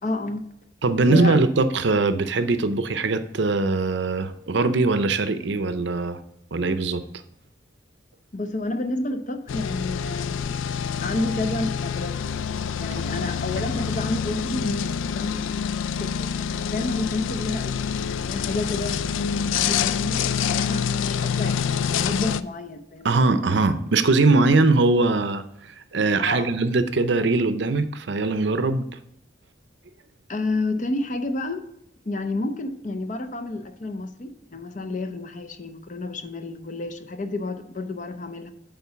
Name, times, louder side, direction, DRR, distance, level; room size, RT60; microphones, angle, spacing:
voice 1, 0.0-0.5 1.0-1.4 8.3-10.5 11.0-12.3 12.8-15.5 15.8-23.2 26.3-26.5 30.3-31.6 32.1-38.5, left 2 dB, 40° left, 0.6 m, -30 dB
voice 2, 0.8-6.2 6.5-7.0 23.0-28.9, right 3 dB, 65° right, 0.6 m, -21 dB
sound 1, 9.5-22.4, left 7 dB, 90° left, 0.3 m, -26 dB
8.4 x 3.9 x 5.8 m
head